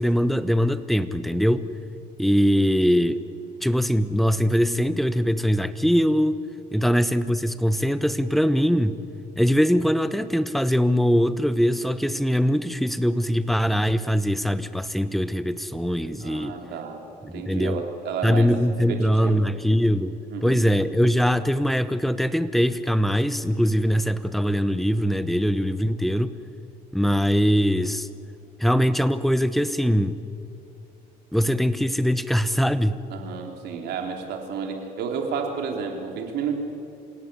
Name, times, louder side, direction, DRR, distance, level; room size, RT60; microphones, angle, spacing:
voice 1, 0.0-1.7 2.2-3.2 3.6-6.4 6.7-9.0 9.4-16.6 17.3-17.8 18.2-20.1 20.4-26.4 26.9-28.1 28.6-30.2 31.3-33.0, equal, ahead, 13 dB, 1.0 m, -22 dB
voice 2, 16.2-17.0 17.3-18.5 18.9-19.6 20.3-20.6 33.1-36.5, right 6 dB, 75° right, 3 dB, 3.6 m, -31 dB
27.0 x 17.0 x 9.6 m, 2.6 s
cardioid pair, 110°, 17 cm